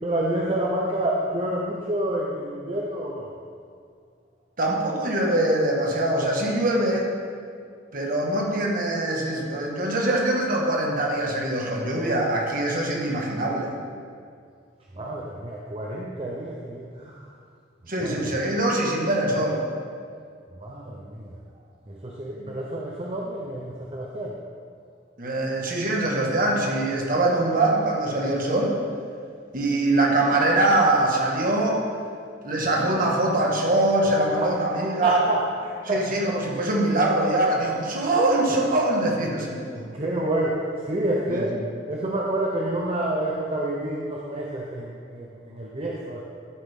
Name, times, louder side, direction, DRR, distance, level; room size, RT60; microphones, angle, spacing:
voice 1, 0.0-3.3 14.9-17.3 18.0-18.4 20.5-21.4 21.9-24.4 34.4-36.1 38.5-38.6 39.9-46.2, right 1 dB, 30° right, -3 dB, 0.8 m, -29 dB
voice 2, 4.6-7.1 7.9-13.7 17.9-19.6 22.3-22.5 25.2-28.8 29.5-31.8 32.4-35.3 35.9-39.9 41.3-41.5, right 1 dB, 45° right, -1 dB, 1.7 m, -23 dB
13.0 x 7.7 x 3.7 m, 2.2 s
head